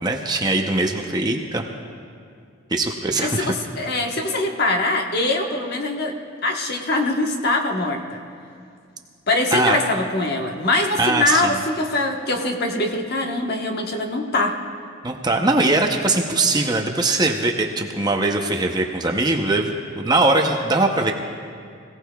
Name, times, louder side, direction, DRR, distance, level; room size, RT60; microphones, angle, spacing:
voice 1, 0.0-1.6 2.7-3.5 9.5-9.8 11.0-11.6 15.0-19.7 20.0-21.1, right 2 dB, 20° right, 2 dB, 0.7 m, -21 dB
voice 2, 3.2-6.1 6.4-8.2 9.3-14.6, left 2 dB, 50° left, 2 dB, 1.2 m, -23 dB
26.0 x 17.0 x 2.3 m, 2.3 s
head